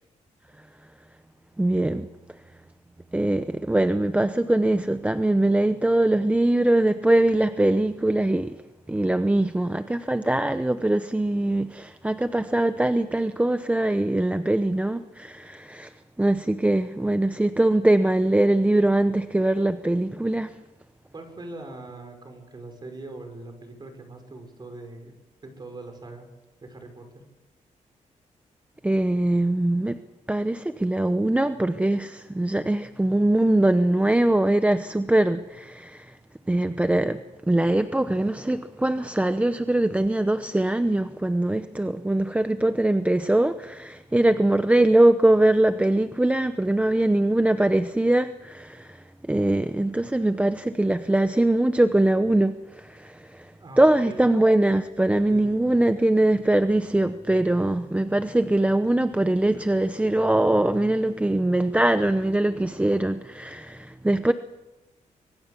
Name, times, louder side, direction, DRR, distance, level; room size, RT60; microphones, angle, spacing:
voice 1, 1.6-2.1 3.1-8.5 8.9-20.6 28.8-30.0 30.3-36.2 36.5-53.5 53.8-64.3, right 1 dB, 10° right, 0.8 m, -22 dB
voice 2, 21.1-25.1 25.4-26.3 26.6-27.0 44.2-44.5 53.6-54.2 55.3-55.6, right 2 dB, 30° right, 6.0 m, -41 dB
25.0 x 23.0 x 7.0 m
cardioid pair, 115°, 14 cm